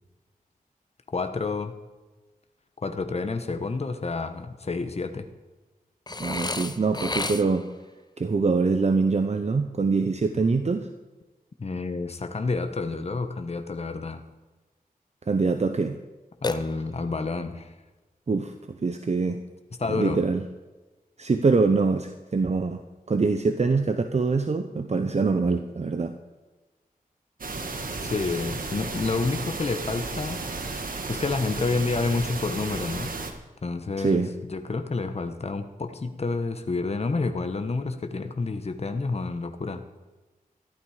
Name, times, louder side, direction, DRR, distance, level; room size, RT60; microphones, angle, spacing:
voice 1, 1.1-1.7 2.8-5.3 11.6-14.2 16.4-17.7 19.8-20.2 28.0-30.4 31.1-33.1 33.6-39.8, left 3 dB, 45° left, 7 dB, 1.2 m, -29 dB
Burping eructation, 6.1-7.8 16.4-17.2, left 3 dB, 25° left, 0.8 m, -32 dB
voice 2, 6.2-7.6 8.2-10.9 15.3-16.0 18.3-18.5 18.8-19.4 19.9-20.4 21.2-22.8 23.1-26.1 34.0-34.3, right 4 dB, 45° right, 8 dB, 0.9 m, -24 dB
sound 1, 27.4-33.3, right 3 dB, 70° right, 1.8 m, -33 dB
14.5 x 12.0 x 5.0 m, 1.2 s
wide cardioid pair, 75°, 15 cm